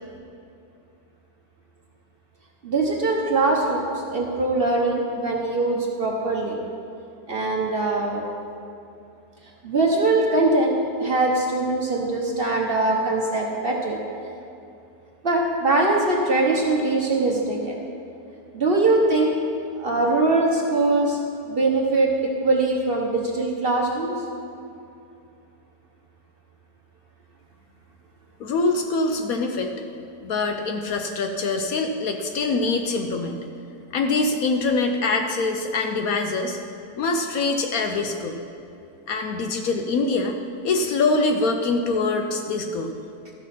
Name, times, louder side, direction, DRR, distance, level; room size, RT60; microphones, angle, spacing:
voice 1, 2.6-6.6 7.3-8.2 9.6-10.7 11.0-14.0 15.2-17.8 18.5-19.3 19.8-21.2 21.5-24.1, right 2 dB, 40° right, -1 dB, 1.0 m, -22 dB
voice 2, 28.4-29.7 30.2-33.4 33.9-36.6 37.0-38.4 39.1-40.3 40.6-42.9, left 3 dB, 65° left, 5 dB, 1.0 m, -24 dB
13.0 x 6.2 x 5.7 m, 2.6 s
omnidirectional pair, 1.8 m